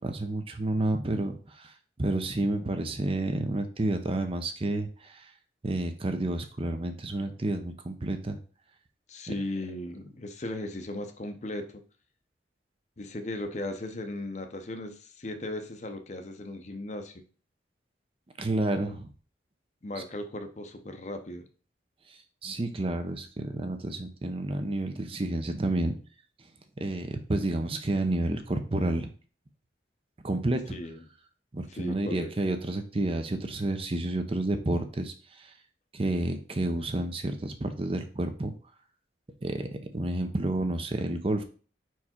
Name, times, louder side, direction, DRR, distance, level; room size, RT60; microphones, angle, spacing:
voice 1, 0.0-1.7 2.0-5.3 5.6-8.4 18.4-19.1 20.0-20.1 22.4-25.9 26.8-29.1 30.2-30.8 31.5-35.5 35.9-38.5 39.4-39.7 39.9-41.4, right 1 dB, 30° right, 7 dB, 0.6 m, -30 dB
voice 2, 9.1-11.8 13.0-17.1 19.8-21.4 30.7-31.0 31.7-32.3, left 1 dB, 40° left, 7 dB, 0.7 m, -37 dB
4.9 x 4.6 x 4.3 m, 0.39 s
head